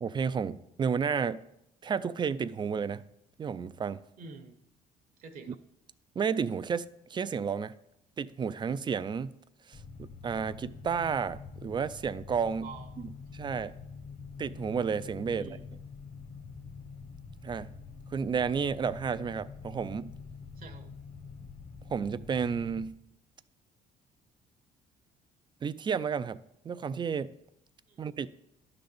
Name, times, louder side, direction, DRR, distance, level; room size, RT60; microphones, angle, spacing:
voice 1, 0.0-1.4 1.8-3.0 3.4-4.0 5.5-5.6 6.2-7.7 8.2-9.3 9.7-12.7 13.3-13.7 14.4-15.5 17.4-17.7 18.1-20.1 21.9-22.9 25.6-26.4 26.6-27.3 28.0-28.3, right 6 dB, 25° right, 0.3 m, -31 dB
voice 2, 4.2-4.6 5.2-5.6 12.6-13.1 15.4-15.6 20.6-21.0 27.9-28.0, right 5 dB, 55° right, 0.9 m, -47 dB
sound 1, 9.7-22.9, left 5 dB, 45° left, 1.2 m, -46 dB
11.5 x 3.9 x 6.9 m
cardioid pair, 110°, 17 cm